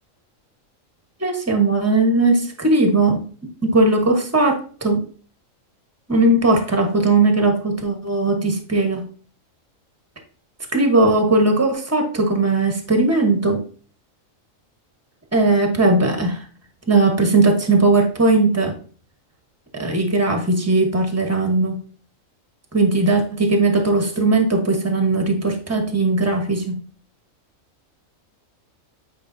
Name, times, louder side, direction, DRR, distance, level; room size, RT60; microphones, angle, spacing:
voice 1, 1.2-3.2 3.6-5.0 6.1-9.0 10.7-13.6 15.3-16.5 16.9-18.7 19.7-21.8 22.7-26.8, right 2 dB, 10° right, 4 dB, 1.2 m, -18 dB
8.8 x 4.9 x 2.7 m, 0.41 s
omnidirectional pair, 1.4 m